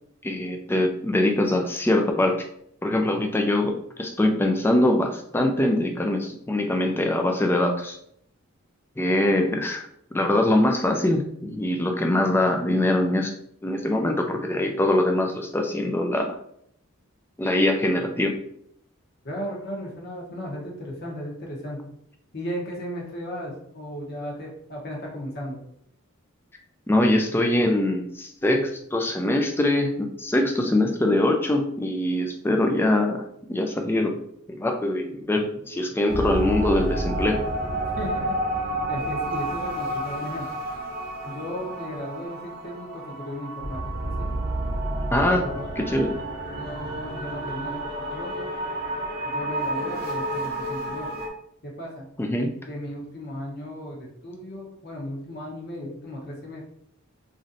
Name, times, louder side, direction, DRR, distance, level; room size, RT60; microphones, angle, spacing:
voice 1, 0.2-2.4 2.8-8.0 9.0-13.3 13.6-16.4 17.4-18.3 26.9-33.2 33.5-34.2 34.5-37.4 45.1-45.4 45.8-46.1 52.2-52.5, left 1 dB, 10° left, 3 dB, 0.3 m, -23 dB
voice 2, 19.2-21.8 22.3-25.6 38.0-38.4 38.9-40.5 41.2-44.3 45.3-45.7 46.5-47.8 48.1-48.5 49.3-51.1 51.6-52.1 52.7-56.6, equal, 50° left, -2 dB, 0.8 m, -35 dB
sound 1, 36.1-51.3, right 1 dB, 50° right, 0.7 m, -30 dB
3.1 x 2.6 x 2.6 m, 0.70 s
head